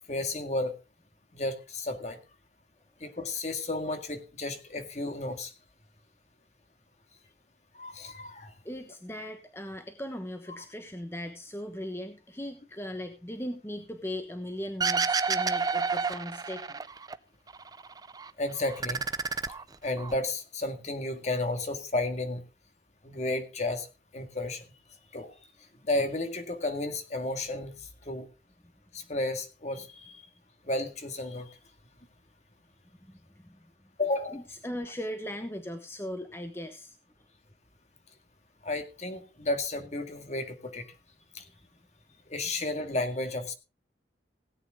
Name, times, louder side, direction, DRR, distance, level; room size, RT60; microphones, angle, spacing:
voice 1, 0.1-0.7 1.3-2.2 3.0-5.5 7.7-8.5 18.4-19.1 19.8-22.4 23.0-23.9 24.1-24.6 25.1-25.3 25.8-27.8 28.1-28.3 28.9-30.2 30.7-31.5 34.0-34.4 38.6-40.9 41.3-41.4 42.3-43.5, left 2 dB, 40° left, 6 dB, 1.9 m, -32 dB
voice 2, 8.6-16.8 33.4-33.6 34.3-36.9, equal, 15° left, 6 dB, 1.1 m, -38 dB
sound 1, 14.8-17.1 17.5-18.3 18.6-20.2, right 5 dB, 20° right, 0.5 m, -30 dB
17.5 x 9.1 x 3.7 m, 0.30 s
head